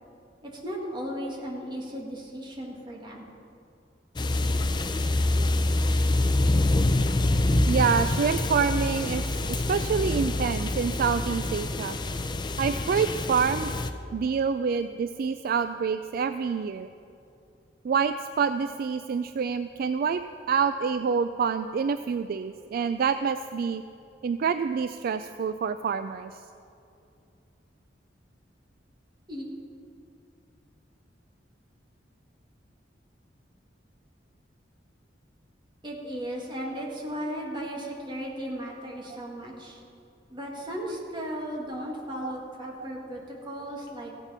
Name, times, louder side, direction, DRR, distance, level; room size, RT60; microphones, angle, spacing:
voice 1, 0.4-3.3 29.3-29.5 35.8-39.8 40.3-44.1, equal, 25° right, -1 dB, 2.0 m, -36 dB
sound 1, 4.2-13.9, left 2 dB, 25° left, 0.5 m, -26 dB
voice 2, 7.7-12.0 12.6-13.7 14.1-16.9 17.8-20.2 20.5-23.8 24.2-26.4 42.2-42.3 42.6-42.8, right 6 dB, 55° right, 10 dB, 0.3 m, -27 dB
15.0 x 8.1 x 5.6 m, 2.6 s
head